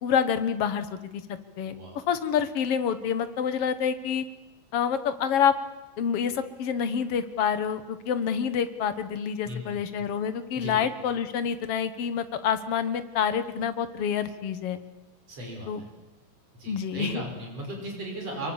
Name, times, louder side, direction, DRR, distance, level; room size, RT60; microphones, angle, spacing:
voice 1, 0.0-4.2 4.7-5.6 6.0-14.8 15.7-15.8 16.7-17.2, left 7 dB, 55° left, 12 dB, 2.0 m, -27 dB
voice 2, 1.6-2.0 9.4-9.8 10.6-10.8 15.3-15.9 16.5-18.5, right 1 dB, 50° right, 1 dB, 6.6 m, -36 dB
24.0 x 23.5 x 7.3 m, 1.0 s
omnidirectional pair, 3.6 m